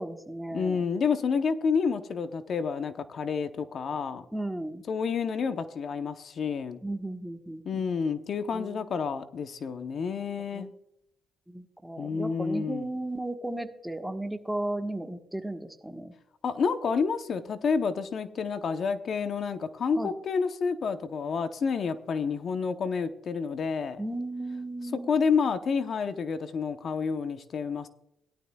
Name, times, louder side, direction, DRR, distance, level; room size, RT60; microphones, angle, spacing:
voice 1, 0.0-0.8 4.3-4.8 6.8-7.9 8.5-8.8 10.5-10.7 11.5-16.1 20.0-20.1 24.0-25.1, right 1 dB, 5° right, 5 dB, 1.3 m, -35 dB
voice 2, 0.5-4.2 4.9-6.8 7.6-10.7 12.0-12.9 16.4-24.0 24.9-27.9, left 5 dB, 55° left, 9 dB, 0.8 m, -29 dB
17.0 x 12.0 x 2.3 m, 0.77 s
cardioid pair, 90°, 0 cm